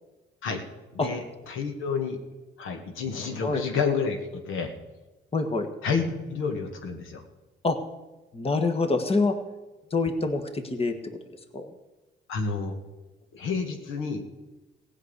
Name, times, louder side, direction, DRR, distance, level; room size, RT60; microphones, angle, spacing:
voice 1, 0.9-2.2 2.6-4.7 5.8-7.2 12.3-12.8 13.3-14.2, left 5 dB, 85° left, 5 dB, 1.9 m, -29 dB
voice 2, 5.3-5.7 7.6-7.8 8.3-9.4 9.9-11.2 11.5-11.7, left 3 dB, 30° left, 6 dB, 1.6 m, -26 dB
16.0 x 6.4 x 9.8 m, 1.1 s
cardioid pair, 90°, 20 cm